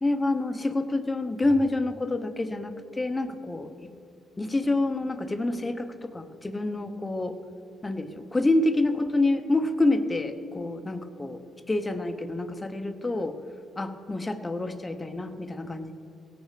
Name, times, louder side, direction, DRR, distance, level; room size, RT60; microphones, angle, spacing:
voice 1, 0.0-3.7 4.4-7.4 7.8-11.4 11.7-13.4 13.8-15.9, left 2 dB, 20° left, 8 dB, 0.9 m, -27 dB
17.0 x 6.5 x 6.6 m, 2.8 s
cardioid pair, 90°, 0 cm